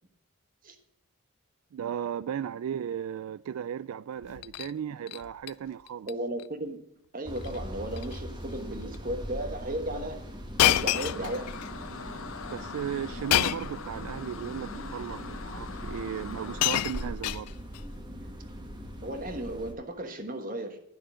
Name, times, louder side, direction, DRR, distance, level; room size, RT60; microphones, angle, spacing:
voice 1, 1.7-6.1 12.5-17.5, right 8 dB, 75° right, 0.3 m, -36 dB
Shatter, 4.2-4.7 5.1-5.5 5.9-6.1 6.4-6.5 7.4-7.6 7.9-8.2 8.9-9.0 10.6-11.7 13.3-13.8 14.8-14.9 15.9-16.0 16.3-17.8 18.8-19.0, left 13 dB, 90° left, 0.4 m, -28 dB
voice 2, 6.1-6.9 7.1-10.2 10.6-11.5 19.0-20.8, right 1 dB, 40° right, 1.3 m, -35 dB
sound 1, 7.2-19.7, equal, 20° right, 1.3 m, -41 dB
sound 2, 10.6-17.2, left 4 dB, 65° left, 1.0 m, -42 dB
11.5 x 6.3 x 7.5 m
head